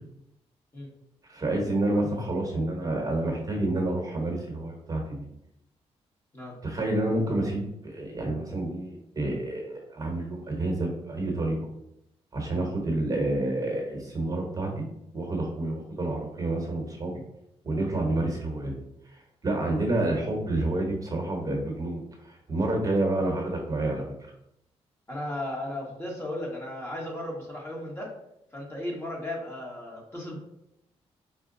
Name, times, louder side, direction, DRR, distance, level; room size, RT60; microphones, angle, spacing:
voice 1, 1.3-5.3 6.6-11.7 12.3-14.9 15.1-17.2 17.6-18.8 19.4-24.1, right 2 dB, 30° right, 1 dB, 1.0 m, -29 dB
voice 2, 25.1-28.1 28.5-30.4, left 1 dB, 20° left, -2 dB, 1.2 m, -35 dB
4.9 x 2.2 x 3.8 m, 0.80 s
cardioid pair, 110°, 11 cm